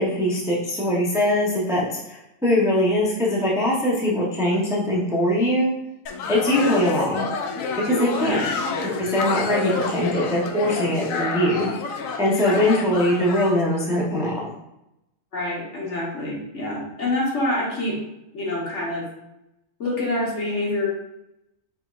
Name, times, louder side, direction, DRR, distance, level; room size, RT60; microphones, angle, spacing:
voice 1, 0.0-5.7 6.3-7.3 7.8-8.4 9.0-11.7 12.2-14.5, left 1 dB, 5° right, -5 dB, 0.8 m, -22 dB
sound 1, 6.1-13.6, left 4 dB, 90° left, 1.1 m, -28 dB
voice 2, 15.3-18.0 18.3-19.1 19.8-20.9, left 1 dB, 65° left, -4 dB, 1.6 m, -26 dB
5.8 x 3.7 x 2.5 m, 0.86 s
omnidirectional pair, 1.3 m